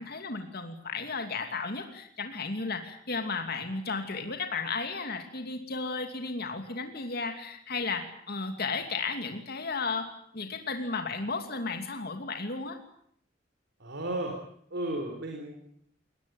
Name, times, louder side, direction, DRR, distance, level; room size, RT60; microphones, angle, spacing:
voice 1, 0.0-12.8, left 4 dB, 55° left, 5 dB, 2.8 m, -34 dB
voice 2, 13.8-14.4 14.7-15.5, right 1 dB, 65° right, 1 dB, 4.1 m, -33 dB
22.0 x 19.0 x 9.3 m, 0.67 s
head